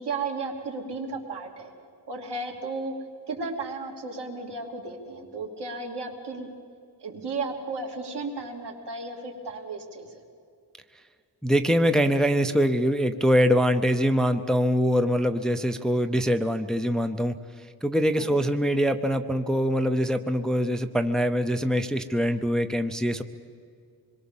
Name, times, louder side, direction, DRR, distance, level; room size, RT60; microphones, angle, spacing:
voice 1, 0.0-1.7 2.1-2.9 3.3-6.5 7.0-10.2 18.2-18.5, right 3 dB, 80° right, 1 dB, 3.1 m, -34 dB
voice 2, 11.4-23.2, equal, ahead, 8 dB, 0.6 m, -24 dB
25.5 x 22.0 x 7.2 m, 2.3 s
wide cardioid pair, 170°, 40 cm